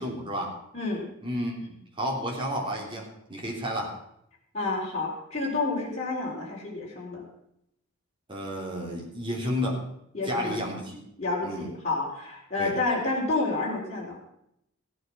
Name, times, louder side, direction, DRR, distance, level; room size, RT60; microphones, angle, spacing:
voice 1, 0.0-0.5 1.2-4.0 8.3-9.8 10.2-11.0 11.4-11.7 12.6-12.7, equal, 25° right, -1 dB, 3.1 m, -31 dB
voice 2, 0.7-1.1 4.5-7.2 10.1-10.6 11.2-14.2, left 3 dB, 30° left, -5 dB, 4.0 m, -29 dB
16.0 x 8.8 x 6.0 m, 0.77 s
head